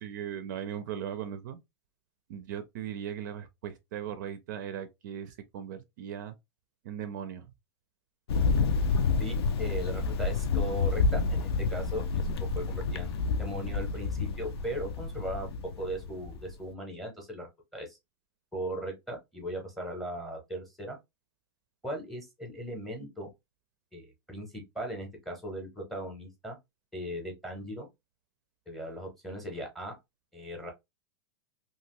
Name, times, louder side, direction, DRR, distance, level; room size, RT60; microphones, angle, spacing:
voice 1, 0.0-1.6 2.3-6.3 6.8-7.5, right 9 dB, 50° right, 0.4 m, -38 dB
Thunder, 8.3-16.5, left 4 dB, 90° left, 0.5 m, -29 dB
voice 2, 9.2-12.2 12.5-15.5 15.8-18.0 18.5-21.0 21.8-23.3 23.9-26.6 26.9-27.9 28.7-29.9 30.3-30.7, equal, ahead, 0.7 m, -38 dB
2.8 x 2.4 x 2.9 m
supercardioid pair, 170°, 13 cm